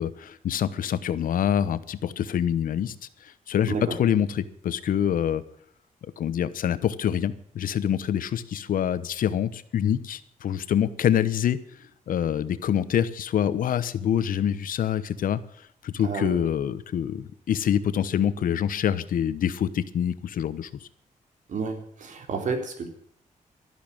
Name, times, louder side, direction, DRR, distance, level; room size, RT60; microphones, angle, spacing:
voice 1, 0.0-2.9 3.2-5.4 6.2-11.6 12.1-15.4 15.8-20.7, left 9 dB, 85° left, 15 dB, 1.0 m, -26 dB
voice 2, 16.0-16.4 21.5-22.9, right 4 dB, 65° right, 4 dB, 3.6 m, -31 dB
13.0 x 11.5 x 8.8 m, 0.65 s
wide cardioid pair, 130°, 14 cm